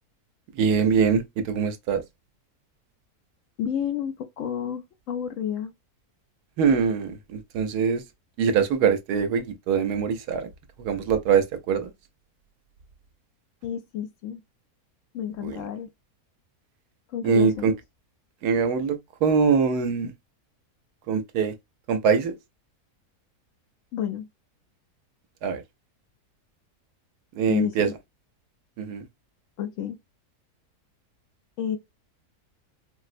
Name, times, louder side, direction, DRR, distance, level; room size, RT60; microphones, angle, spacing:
voice 1, 0.5-2.0 6.6-8.0 8.4-10.5 10.8-11.9 15.4-15.5 17.2-17.7 18.4-20.1 21.1-21.5 21.9-22.4 25.4-25.6 27.4-27.9 28.8-29.1, right 6 dB, 85° right, 1.2 m, -23 dB
voice 2, 3.6-5.7 13.6-14.4 15.1-15.9 17.1-17.8 23.9-24.3 27.5-27.9 29.6-30.0 31.6-31.8, left 9 dB, 65° left, 0.8 m, -30 dB
4.2 x 2.0 x 2.4 m
omnidirectional pair, 1.6 m